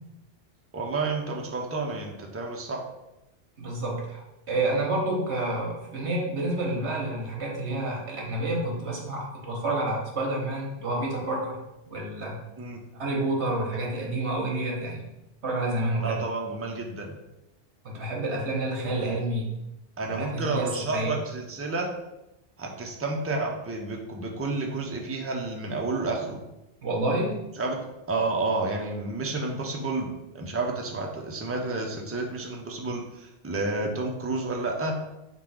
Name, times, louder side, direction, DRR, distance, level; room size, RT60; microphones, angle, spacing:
voice 1, 0.7-2.8 12.6-12.8 16.0-17.2 20.0-21.9 22.6-26.4 27.6-27.8 28.1-35.0, right 3 dB, 20° right, 1 dB, 0.3 m, -30 dB
voice 2, 3.6-11.6 11.9-12.4 12.9-15.0 15.4-16.1 17.8-19.5 20.0-21.1 26.8-27.4, right 2 dB, 70° right, -1 dB, 1.4 m, -29 dB
3.7 x 2.9 x 4.8 m, 0.91 s
omnidirectional pair, 1.2 m